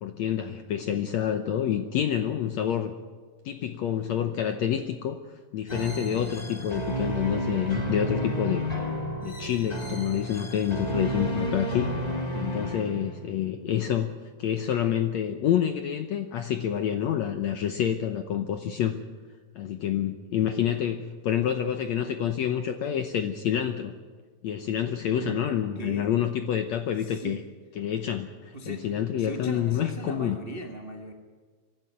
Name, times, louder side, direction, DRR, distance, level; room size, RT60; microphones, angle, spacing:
voice 1, 0.0-2.9 3.4-5.2 5.5-8.6 9.2-14.1 14.4-19.0 19.5-23.9 24.4-27.4 27.8-30.4, left 10 dB, 75° left, 7 dB, 1.6 m, -28 dB
sound 1, 5.7-13.4, equal, 50° left, 0.4 m, -31 dB
voice 2, 25.1-25.5 25.7-26.1 27.0-27.4 28.5-28.8 29.2-31.1, right 2 dB, 75° right, 3 dB, 0.5 m, -38 dB
24.5 x 12.5 x 9.4 m, 1.5 s
omnidirectional pair, 4.3 m